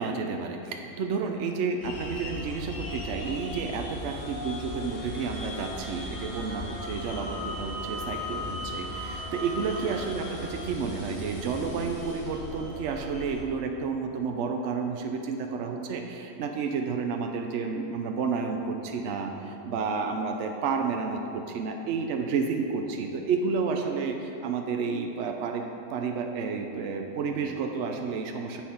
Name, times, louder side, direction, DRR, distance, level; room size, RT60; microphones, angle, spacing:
voice 1, 0.0-25.7 25.9-28.6, right 5 dB, 75° right, 3 dB, 1.0 m, -31 dB
sound 1, 1.8-13.4, left 1 dB, 85° left, 1.8 m, -37 dB
7.5 x 6.9 x 5.7 m, 2.8 s
omnidirectional pair, 1.3 m